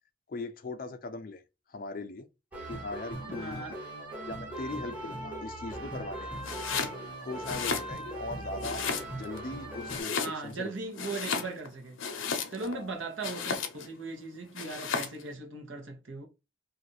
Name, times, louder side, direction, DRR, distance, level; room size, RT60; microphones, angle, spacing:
voice 1, 0.3-1.4 1.7-2.3 2.7-3.6 4.3-6.4 7.2-10.7 12.6-12.9, left 3 dB, 45° left, 0.4 m, -39 dB
sound 1, 2.5-10.0, right 1 dB, 5° right, 1.0 m, -39 dB
voice 2, 3.3-3.8 10.2-12.0 12.5-16.3, right 3 dB, 75° right, 0.9 m, -38 dB
Domestic sounds home sounds, 6.4-7.0 7.4-8.3 8.6-9.4 9.9-10.6 10.9-12.8 13.2-13.9 14.6-15.2, left 5 dB, 80° left, 0.6 m, -34 dB
2.5 x 2.4 x 4.0 m
head